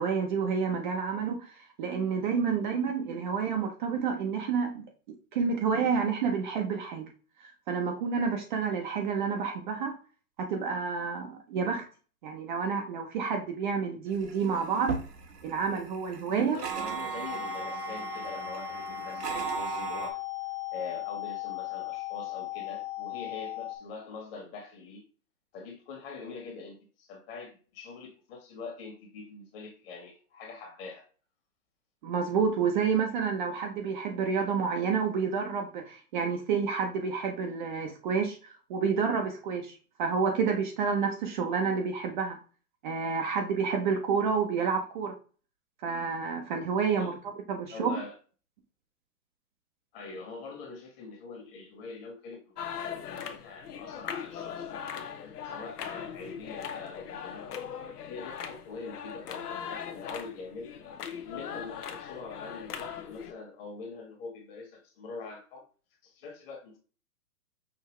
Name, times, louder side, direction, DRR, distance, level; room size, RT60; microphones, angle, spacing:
voice 1, 0.0-4.8 5.3-7.1 7.7-10.0 10.4-11.8 12.2-14.9 15.4-16.6 32.0-38.4 38.7-39.7 40.0-42.4 42.8-45.1 45.8-47.2 47.5-47.9, right 5 dB, 30° right, 0.6 m, -29 dB
sound 1, 14.1-20.1, right 6 dB, 85° right, 1.2 m, -37 dB
voice 2, 16.3-20.2 20.7-25.0 25.5-31.0 46.7-47.1 47.7-48.1 49.9-57.5 58.0-60.8 61.2-65.6 66.0-66.8, left 4 dB, 40° left, 1.6 m, -44 dB
sound 2, 17.3-23.8, left 17 dB, 20° left, 0.7 m, -37 dB
sound 3, 52.6-63.3, left 8 dB, 75° left, 0.9 m, -40 dB
5.8 x 2.7 x 3.2 m
hypercardioid pair, 140°, 47 cm